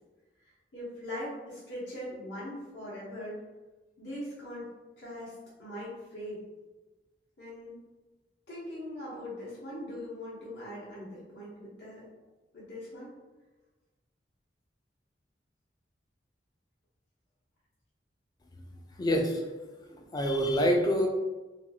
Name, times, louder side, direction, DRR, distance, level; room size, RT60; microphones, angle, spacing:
voice 1, 0.7-3.4 4.0-4.6 5.0-6.4 7.4-7.7 8.5-12.0 12.5-13.1, left 1 dB, 70° left, -8 dB, 1.0 m, -41 dB
voice 2, 19.0-19.5 19.9-21.1, equal, 20° left, 3 dB, 0.3 m, -26 dB
2.8 x 2.2 x 2.8 m, 1.2 s
head